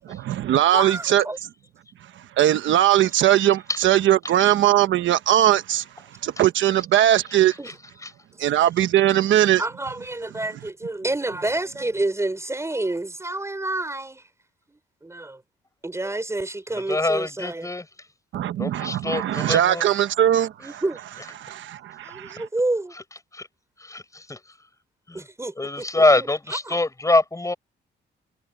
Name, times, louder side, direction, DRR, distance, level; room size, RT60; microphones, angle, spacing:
voice 1, 0.0-1.2 2.0-7.6 8.4-9.6 18.3-20.8 21.4-22.5, right 12 dB, 85° right, 1.1 m, -20 dB
voice 2, 0.7-1.4 7.6-7.7 9.6-14.3 14.7-15.4 15.8-17.7 20.6-21.0 22.0-22.9 25.1-26.8, right 2 dB, 15° right, 5.1 m, -29 dB
voice 3, 16.9-17.9 18.6-19.9 22.9-23.0 23.3-23.5 23.8-24.4 25.1-25.2 25.6-27.5, left 2 dB, 15° left, 7.5 m, -24 dB
cardioid pair, 110°, 19 cm